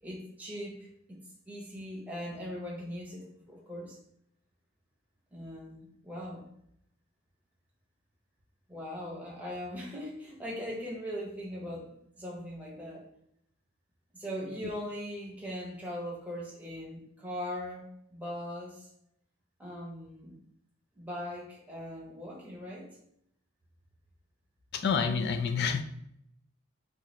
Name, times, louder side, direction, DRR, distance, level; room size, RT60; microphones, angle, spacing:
voice 1, 0.0-4.0 5.3-6.5 8.7-13.1 14.1-18.9 19.6-20.4 21.0-23.0, equal, 5° right, -3 dB, 0.8 m, -40 dB
voice 2, 24.7-25.8, left 5 dB, 50° left, 9 dB, 0.3 m, -28 dB
3.9 x 2.4 x 3.0 m, 0.75 s
head